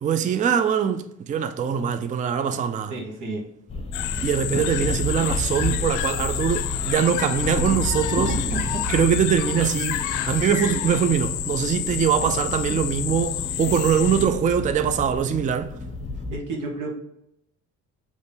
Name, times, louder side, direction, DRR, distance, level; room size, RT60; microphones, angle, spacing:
voice 1, 0.0-2.9 4.2-8.3 8.9-15.7, right 7 dB, 25° right, 0.3 m, -23 dB
voice 2, 2.9-3.4 8.3-8.8 12.7-12.8 16.3-16.9, right 2 dB, 90° right, 1.4 m, -31 dB
sound 1, 3.7-16.4, left 1 dB, 20° left, 0.9 m, -31 dB
Birds in the forest from Utria at dusk El Valle, 3.9-14.3, left 11 dB, 80° left, 0.5 m, -29 dB
3.7 x 3.1 x 4.0 m
cardioid pair, 90°, 30 cm